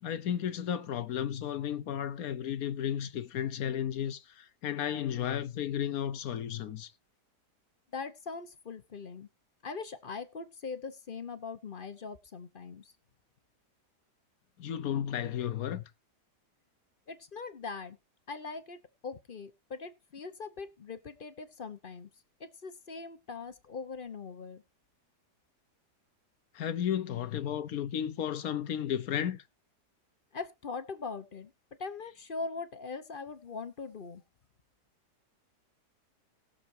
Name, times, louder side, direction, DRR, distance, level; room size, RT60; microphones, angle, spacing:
voice 1, 0.0-6.9 14.6-15.8 26.5-29.4, left 9 dB, 65° left, 1.1 m, -33 dB
voice 2, 7.9-9.3 9.6-12.9 17.1-18.0 18.3-22.1 22.4-24.6 30.3-31.5 31.8-34.2, left 4 dB, 40° left, 0.9 m, -41 dB
20.0 x 6.9 x 2.7 m
omnidirectional pair, 1.8 m